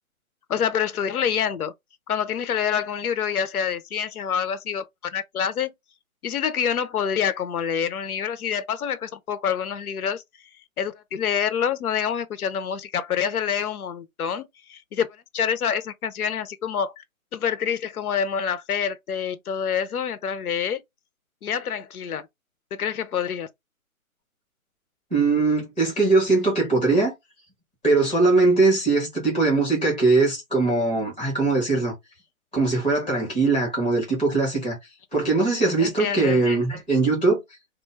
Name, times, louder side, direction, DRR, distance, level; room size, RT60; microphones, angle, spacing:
voice 1, 0.5-1.7 2.1-4.8 5.1-5.7 6.2-10.2 10.8-15.1 15.3-17.0 17.3-20.8 21.4-22.3 22.7-23.5 35.8-36.4, left 8 dB, 90° left, 0.6 m, -26 dB
voice 2, 25.1-27.1 27.8-31.9 32.5-34.8 35.1-37.4, right 3 dB, 5° left, 0.6 m, -21 dB
2.2 x 2.1 x 3.1 m
hypercardioid pair, 155°, 43 cm